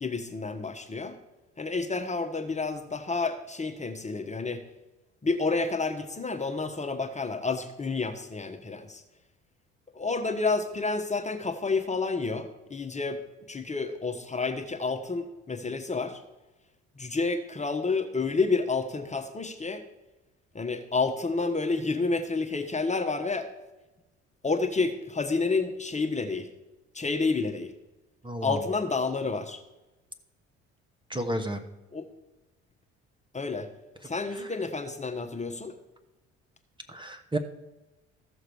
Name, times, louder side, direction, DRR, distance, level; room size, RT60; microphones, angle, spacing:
voice 1, 0.0-1.1 1.6-4.6 5.2-9.0 9.9-16.2 17.0-19.8 20.5-23.5 24.4-26.5 26.9-27.7 28.4-29.6 31.9-32.1 33.3-33.7 34.0-35.7, left 3 dB, 20° left, 5 dB, 1.2 m, -29 dB
voice 2, 28.2-28.6 31.1-31.6 34.4-34.5 36.9-37.4, right 1 dB, 15° right, 6 dB, 1.3 m, -31 dB
14.5 x 6.5 x 4.8 m, 1.0 s
hypercardioid pair, 55°, 34 cm